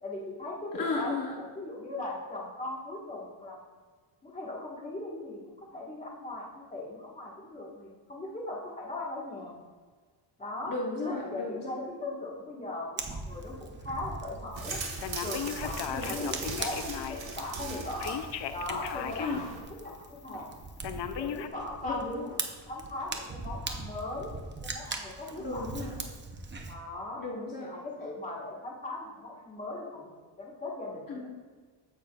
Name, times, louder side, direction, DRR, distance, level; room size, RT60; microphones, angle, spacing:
voice 1, 0.0-3.6 4.2-9.6 10.4-10.7 11.0-14.8 15.2-18.2 18.5-20.5 21.1-22.3 22.6-24.3 24.6-25.7 26.7-27.2 27.6-30.1 30.4-31.3, left 2 dB, 15° left, -4 dB, 1.6 m, -39 dB
voice 2, 0.7-1.3 10.7-11.8 15.9-16.4 19.2-19.4 21.8-22.3 25.4-26.0 27.2-27.7 31.1-31.3, left 3 dB, 40° left, -3 dB, 1.1 m, -35 dB
Fire, 13.0-26.7, right 3 dB, 25° right, 0.6 m, -41 dB
sound 1, 14.6-19.6, right 4 dB, 65° right, 2.2 m, -40 dB
Telephone, 15.0-17.3 18.0-19.5 19.9-20.0 20.8-21.5, left 9 dB, 60° left, 0.6 m, -36 dB
15.0 x 5.9 x 2.4 m, 1.5 s
wide cardioid pair, 160°, 49 cm